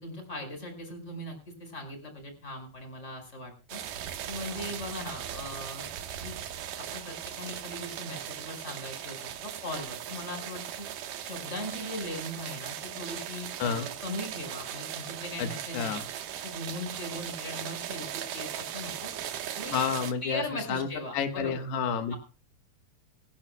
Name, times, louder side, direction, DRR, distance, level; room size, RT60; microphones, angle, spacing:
voice 1, 0.0-3.8 4.3-5.9 6.2-6.4 6.8-10.9 11.2-16.0 16.4-19.1 19.6-19.8 20.2-21.5 22.1-22.2, left 1 dB, 15° left, 4 dB, 5.2 m, -39 dB
sound 1, 3.7-20.1, right 10 dB, 65° right, 2.6 m, -38 dB
voice 2, 15.7-16.1 19.7-20.4 20.7-20.9 21.1-22.1, left 6 dB, 90° left, 7 dB, 3.4 m, -29 dB
27.0 x 10.5 x 2.3 m, 0.35 s
omnidirectional pair, 4.6 m